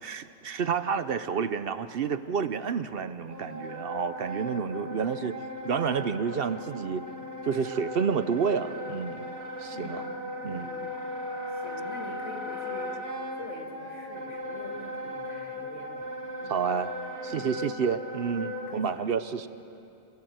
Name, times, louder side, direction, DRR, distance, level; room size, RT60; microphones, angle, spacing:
voice 1, 0.0-5.4 5.6-7.1 7.4-9.3 9.6-10.0 10.4-10.7 16.5-16.9 17.2-19.5, right 6 dB, 60° right, 12 dB, 0.8 m, -29 dB
Wind instrument woodwind instrument, 3.3-18.8, left 1 dB, 90° right, 3.0 m, -37 dB
voice 2, 9.7-11.0 11.5-13.0 13.3-16.6 17.3-17.6 18.3-19.1, left 2 dB, 80° left, 1 dB, 2.9 m, -46 dB
26.5 x 16.5 x 7.9 m, 2.6 s
omnidirectional pair, 1.2 m